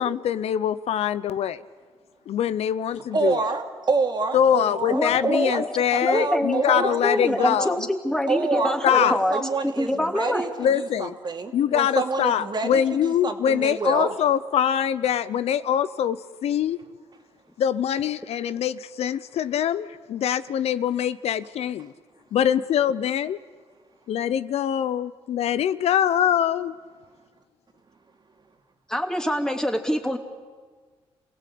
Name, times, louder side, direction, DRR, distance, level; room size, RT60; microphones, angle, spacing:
voice 1, 0.0-1.6 2.3-3.4 4.3-7.8 8.8-9.2 10.6-11.1 11.5-16.8 17.6-21.9 22.3-23.4 24.1-26.8, left 9 dB, 80° left, 14 dB, 0.7 m, -23 dB
voice 2, 3.1-5.6 5.9-7.7 8.3-14.2, right 4 dB, 45° right, 4 dB, 2.6 m, -28 dB
voice 3, 4.9-10.4 28.9-30.2, equal, 5° left, 4 dB, 2.7 m, -25 dB
27.5 x 17.5 x 8.6 m, 1.5 s
cardioid pair, 80°, 11 cm